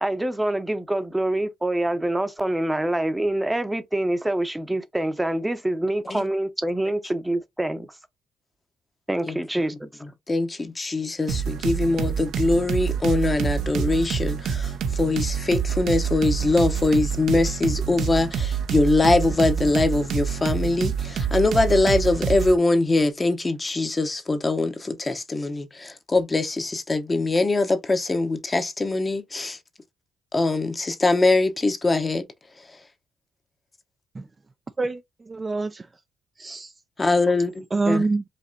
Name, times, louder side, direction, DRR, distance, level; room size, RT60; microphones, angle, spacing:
voice 1, 0.0-7.9 9.1-9.9, right 1 dB, 10° right, 0.8 m, -25 dB
voice 2, 10.3-29.6 30.3-32.2 37.0-38.0, left 2 dB, 25° left, 0.9 m, -22 dB
sound 1, 11.3-22.6, right 7 dB, 75° right, 0.8 m, -27 dB
voice 3, 34.8-35.9 36.4-36.7 37.7-38.2, right 3 dB, 25° right, 0.4 m, -26 dB
5.1 x 3.0 x 2.7 m
cardioid pair, 90°, 0 cm